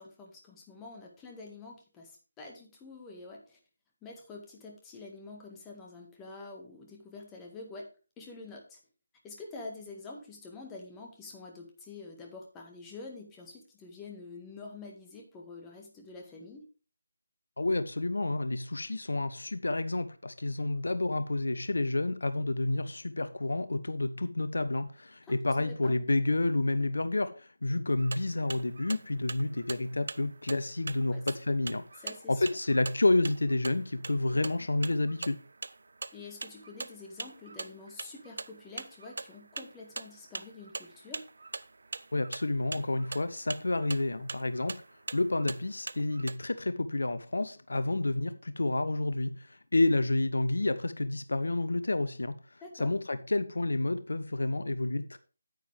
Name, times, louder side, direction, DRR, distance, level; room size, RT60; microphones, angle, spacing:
voice 1, 0.0-3.6 4.0-7.9 8.2-8.8 9.2-16.7 25.2-25.9 31.1-31.2 32.0-32.5 36.1-41.3 52.6-52.9, left 3 dB, 10° left, 1.8 m, -47 dB
voice 2, 17.6-35.4 42.1-44.8 45.1-55.2, left 2 dB, 70° left, 0.8 m, -30 dB
sound 1, 28.0-46.4, right 3 dB, 60° right, 0.5 m, -43 dB
9.4 x 9.1 x 3.5 m
figure-of-eight pair, 155°, 0 cm